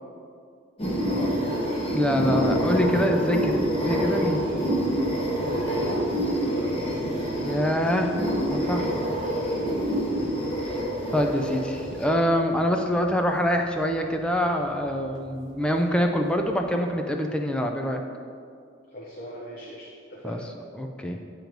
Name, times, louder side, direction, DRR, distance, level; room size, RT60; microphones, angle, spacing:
sound 1, 0.8-12.1, equal, 30° left, 1.5 m, -27 dB
voice 1, 1.2-1.6 4.4-4.7 5.4-6.7 8.5-8.7 9.0-10.2 10.5-10.8 18.9-20.4, equal, 50° left, -4 dB, 0.8 m, -37 dB
voice 2, 1.9-3.6 3.8-4.4 7.4-8.1 8.5-9.0 11.1-18.0 20.2-20.4 20.7-21.2, equal, 5° left, 3 dB, 0.4 m, -25 dB
sound 2, 2.1-16.9, left 1 dB, 85° left, 0.7 m, -44 dB
9.1 x 3.1 x 5.1 m, 2.3 s
head